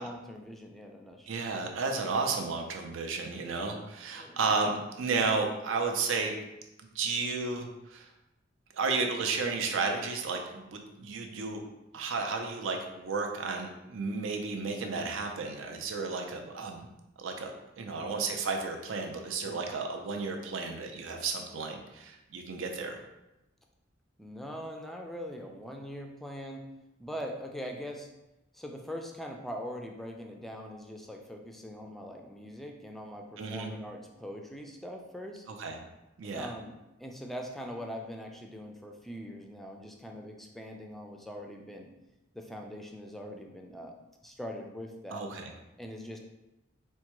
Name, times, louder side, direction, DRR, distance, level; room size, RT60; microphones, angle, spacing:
voice 1, 0.0-1.3 4.1-4.4 17.8-18.1 19.4-19.7 24.2-26.7 27.0-28.1 28.5-35.5 36.2-36.7 37.0-41.9 42.3-43.9 44.2-45.2 45.8-46.2, equal, ahead, 2 dB, 0.3 m, -42 dB
voice 2, 1.3-6.3 6.9-8.1 8.7-11.7 11.9-16.9 17.2-23.0 33.4-33.7 35.6-35.8 36.2-36.5 45.1-45.5, right 4 dB, 80° right, 3 dB, 0.5 m, -33 dB
4.4 x 2.1 x 3.0 m, 0.94 s
head